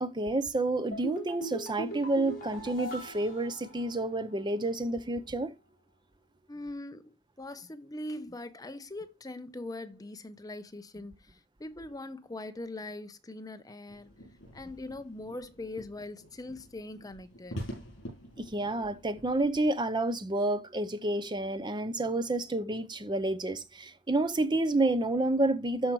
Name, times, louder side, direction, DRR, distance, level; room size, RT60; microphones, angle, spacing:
voice 1, 0.0-5.5 18.4-25.9, right 2 dB, 25° right, 0.7 m, -29 dB
sound 1, 0.9-4.3 4.6-4.7, right 1 dB, 45° left, 4.0 m, -40 dB
voice 2, 6.5-14.1 14.5-17.6, left 2 dB, 20° left, 0.7 m, -42 dB
sound 2, 13.9-19.6, equal, 70° left, 6.2 m, -46 dB
13.5 x 5.0 x 3.1 m
head